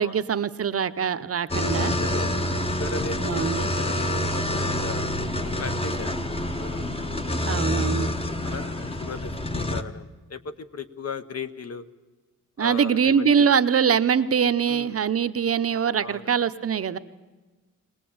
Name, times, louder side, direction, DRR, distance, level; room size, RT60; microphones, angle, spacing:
voice 1, 0.0-1.9 3.2-3.7 7.5-8.1 12.6-17.0, right 7 dB, 50° right, 11 dB, 0.7 m, -23 dB
sound 1, 1.5-9.8, left 1 dB, 20° left, 1.0 m, -27 dB
voice 2, 2.0-5.1 5.4-6.8 8.0-11.8 12.6-13.5 14.7-15.0 16.0-16.4, left 4 dB, 55° left, 10 dB, 1.1 m, -38 dB
22.0 x 19.0 x 8.6 m, 1.2 s
wide cardioid pair, 165°, 31 cm